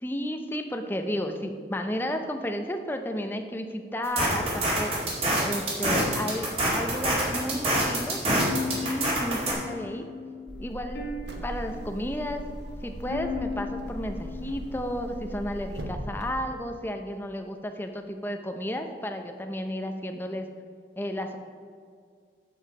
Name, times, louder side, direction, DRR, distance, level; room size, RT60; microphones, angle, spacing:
voice 1, 0.0-4.9 5.4-8.2 8.7-10.1 10.6-11.0 11.4-12.5 12.8-20.5 21.0-21.4, equal, 10° left, 5 dB, 0.6 m, -32 dB
sound 1, 4.0-9.5, right 1 dB, 35° right, 2.1 m, -26 dB
sound 2, 8.4-15.5, left 4 dB, 65° left, 0.9 m, -38 dB
sound 3, 10.5-16.3, equal, 80° right, 1.1 m, -38 dB
8.3 x 7.1 x 4.8 m, 2.2 s
head